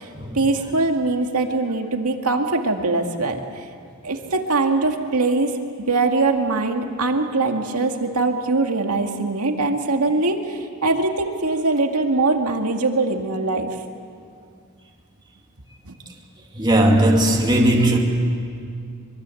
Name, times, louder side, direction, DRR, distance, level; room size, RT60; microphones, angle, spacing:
voice 1, 0.3-3.4 4.0-5.5 5.9-13.7 15.9-16.0, right 3 dB, 85° right, 2.1 m, -22 dB
voice 2, 16.5-18.0, right 1 dB, 20° right, 2.5 m, -17 dB
24.5 x 24.0 x 7.8 m
head